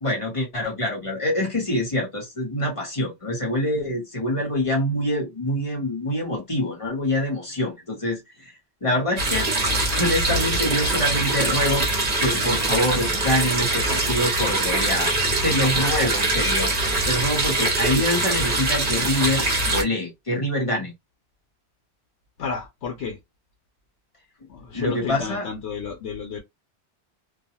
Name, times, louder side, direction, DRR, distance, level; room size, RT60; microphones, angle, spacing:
voice 1, 0.0-8.2 8.8-9.5 10.0-11.9 12.2-15.1 15.4-16.7 17.1-20.9 24.7-25.5, left 1 dB, 30° left, 1.0 m, -25 dB
sound 1, 9.2-19.8, right 2 dB, 40° right, 0.9 m, -23 dB
voice 2, 22.4-23.2 24.5-26.4, left 6 dB, 90° left, 0.9 m, -31 dB
2.4 x 2.2 x 2.7 m
omnidirectional pair, 1.1 m